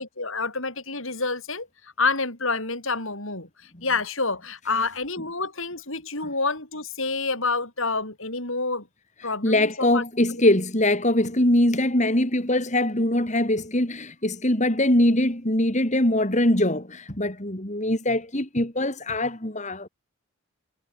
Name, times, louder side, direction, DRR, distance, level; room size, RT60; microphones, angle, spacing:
voice 1, 0.0-8.9 9.2-10.0, left 4 dB, 65° left, 6.9 m, -28 dB
voice 2, 9.4-19.9, left 1 dB, 35° left, 3.2 m, -22 dB
head